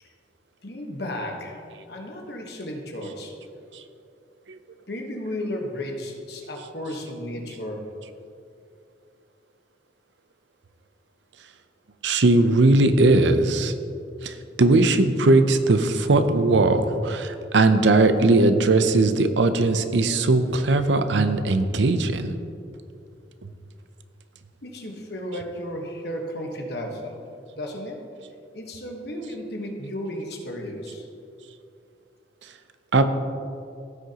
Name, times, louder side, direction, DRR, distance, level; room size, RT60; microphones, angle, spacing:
voice 1, 0.6-1.6 1.9-3.3 4.9-7.9 24.6-27.1 27.5-28.0 28.5-31.1, left 1 dB, 60° left, 1 dB, 1.3 m, -33 dB
voice 2, 12.0-13.7 14.2-22.3 32.9-33.0, right 2 dB, 75° right, 9 dB, 0.6 m, -19 dB
15.5 x 6.4 x 2.9 m, 2.6 s
head